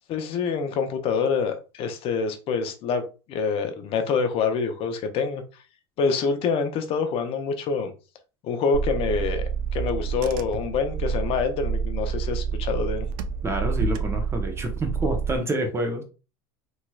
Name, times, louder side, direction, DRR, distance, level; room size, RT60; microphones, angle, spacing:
voice 1, 0.1-3.0 3.3-5.4 6.0-7.9 8.4-9.4 9.7-13.1, left 5 dB, 50° left, 7 dB, 0.7 m, -26 dB
Car / Engine, 8.7-15.4, right 6 dB, 70° right, 0.4 m, -28 dB
voice 2, 13.4-16.0, right 1 dB, 20° right, 3 dB, 0.9 m, -28 dB
3.1 x 2.9 x 2.3 m, 0.32 s
supercardioid pair, 105°, 13 cm